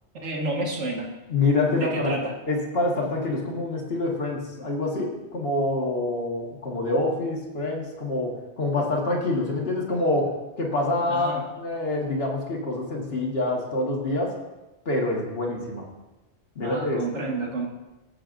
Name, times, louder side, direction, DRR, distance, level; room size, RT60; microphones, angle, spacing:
voice 1, 0.2-1.1 1.7-2.4 11.1-11.5 16.6-17.7, right 2 dB, 75° right, 0 dB, 1.9 m, -29 dB
voice 2, 1.3-2.1 2.5-14.3 14.9-15.9 16.6-17.0, left 2 dB, 55° left, -1 dB, 1.8 m, -26 dB
16.5 x 7.8 x 2.6 m, 1.1 s
omnidirectional pair, 1.2 m